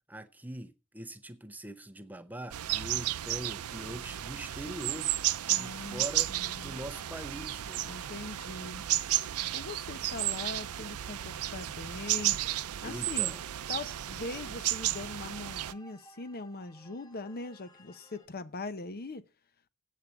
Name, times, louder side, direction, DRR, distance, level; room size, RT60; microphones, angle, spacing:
voice 1, 0.1-5.1 5.5-6.3 6.6-8.1 12.8-13.4, right 1 dB, 10° right, 0.7 m, -42 dB
sound 1, 2.5-15.7, right 14 dB, 90° right, 0.5 m, -33 dB
sound 2, 4.1-18.3, equal, 15° left, 1.0 m, -60 dB
voice 2, 5.5-6.8 7.8-8.9 9.5-12.4 12.8-13.3 13.7-19.2, left 3 dB, 45° left, 0.8 m, -41 dB
8.4 x 8.2 x 7.1 m
head